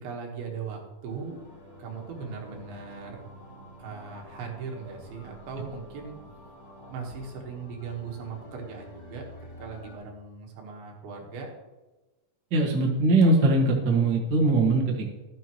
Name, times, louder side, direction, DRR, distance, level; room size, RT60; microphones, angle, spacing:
voice 1, 0.0-1.4 1.8-3.2 3.8-6.2 6.9-9.3 9.6-11.5, right 5 dB, 75° right, 1 dB, 3.3 m, -39 dB
sound 1, 1.0-10.0, right 1 dB, 70° left, 0.8 m, -47 dB
voice 2, 12.5-15.2, right 2 dB, 45° right, -1 dB, 1.5 m, -21 dB
13.0 x 9.4 x 3.0 m, 1.1 s
omnidirectional pair, 4.5 m